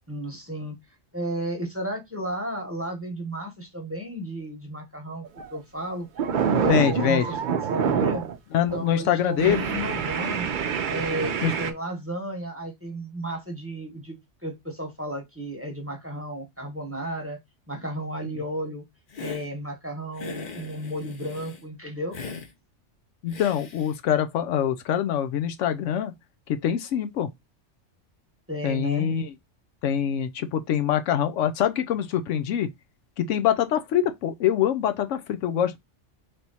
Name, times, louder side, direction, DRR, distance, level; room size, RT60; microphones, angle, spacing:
voice 1, 0.1-0.8 1.1-6.1 6.4-8.2 8.7-10.5 10.9-17.4 17.7-18.8 19.2-22.2 28.5-29.1, right 1 dB, 10° right, 1.0 m, -33 dB
sound 1, 5.2-5.6 5.9-8.4 8.7-8.9 9.4-11.7, right 7 dB, 55° right, 0.6 m, -26 dB
voice 2, 6.7-7.3 8.5-9.6 11.4-11.5 23.2-26.1 26.5-27.3 28.6-29.3 29.8-32.7 33.2-35.8, left 9 dB, 80° left, 0.9 m, -24 dB
Hiss, 19.1-19.5 20.2-21.6 22.1-22.5 23.3-24.0, left 4 dB, 45° left, 0.9 m, -39 dB
3.4 x 2.9 x 4.0 m
omnidirectional pair, 1.3 m